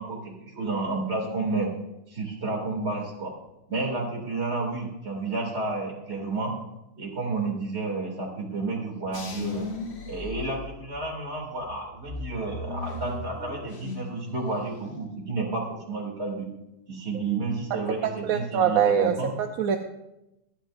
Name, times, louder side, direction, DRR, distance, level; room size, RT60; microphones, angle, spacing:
voice 1, 0.0-1.7 2.1-3.3 3.7-6.5 7.0-9.7 10.1-16.5 16.9-19.3, right 3 dB, 35° right, 0 dB, 3.0 m, -31 dB
sound 1, 9.1-11.2 11.6-14.2 14.5-15.1, left 3 dB, 40° left, 1.2 m, -37 dB
voice 2, 18.2-19.8, right 7 dB, 60° right, 5 dB, 1.0 m, -23 dB
25.0 x 9.3 x 2.6 m, 0.90 s
omnidirectional pair, 1.9 m